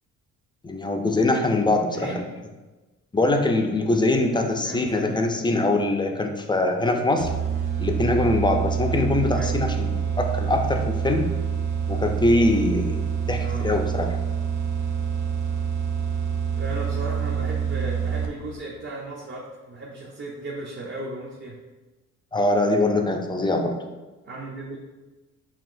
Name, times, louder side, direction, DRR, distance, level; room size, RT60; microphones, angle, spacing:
voice 1, 0.6-2.2 3.1-7.3 7.8-11.3 11.9-14.2 22.3-23.7, left 2 dB, 15° left, 4 dB, 0.4 m, -23 dB
voice 2, 4.6-5.3 9.3-9.6 13.4-13.7 16.5-21.6 24.2-24.8, right 2 dB, 40° right, -4 dB, 0.6 m, -35 dB
sound 1, 7.2-18.6, right 7 dB, 80° right, 0.6 m, -26 dB
5.6 x 2.4 x 2.5 m, 1.2 s
cardioid pair, 90°, 30 cm